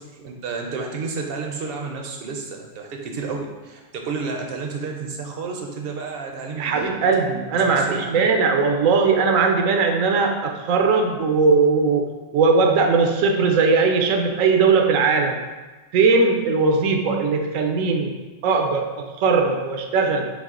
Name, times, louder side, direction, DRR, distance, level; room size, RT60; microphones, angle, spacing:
voice 1, 0.0-3.4 3.6-6.9 7.8-8.1, right 4 dB, 60° right, 2 dB, 0.7 m, -31 dB
voice 2, 6.6-15.4 15.9-18.2 18.4-20.3, right 4 dB, 85° right, 3 dB, 1.0 m, -19 dB
5.8 x 2.0 x 3.7 m, 1.2 s
omnidirectional pair, 1.3 m